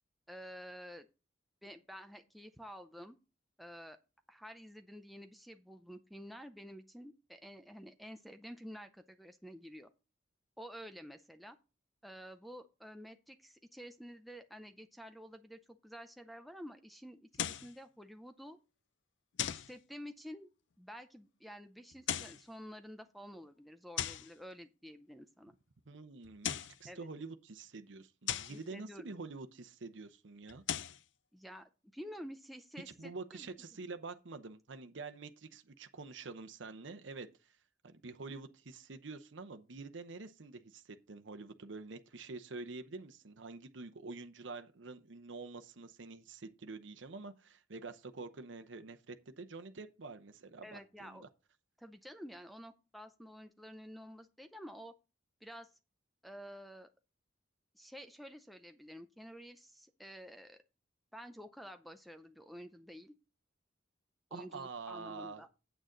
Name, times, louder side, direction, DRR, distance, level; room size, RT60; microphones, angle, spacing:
voice 1, 0.3-1.1 1.6-3.2 3.6-4.0 4.3-9.9 10.6-11.6 12.0-18.6 19.5-20.5 20.8-25.6 26.9-27.1 28.5-29.1 31.3-33.5 50.6-51.2 51.8-54.9 55.4-55.7 56.2-56.9 57.7-60.6 61.1-63.1 64.3-65.5, equal, ahead, 0.5 m, -50 dB
sound 1, 17.3-17.7 19.4-19.7 21.9-22.4 24.0-24.3 26.2-26.8 28.3-28.6 30.5-31.0, left 10 dB, 70° left, 0.5 m, -37 dB
voice 2, 25.9-26.5 26.8-30.6 33.0-37.6 37.8-51.3 64.3-65.4, right 3 dB, 75° right, 0.8 m, -47 dB
8.9 x 8.0 x 3.8 m
head